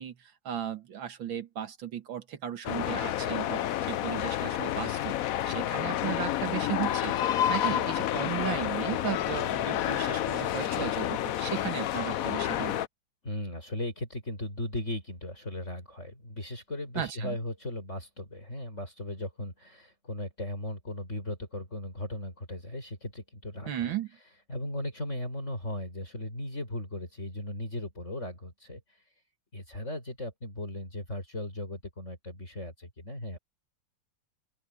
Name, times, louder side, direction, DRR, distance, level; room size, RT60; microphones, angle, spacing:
voice 1, 0.0-12.8 17.0-17.4 23.7-24.1, right 10 dB, 85° right, 2.3 m, -36 dB
sound 1, 2.6-12.9, left 12 dB, 65° left, 0.8 m, -29 dB
voice 2, 13.2-23.9 24.5-28.8 29.5-33.4, left 1 dB, 35° left, 6.5 m, -37 dB
omnidirectional pair, 2.1 m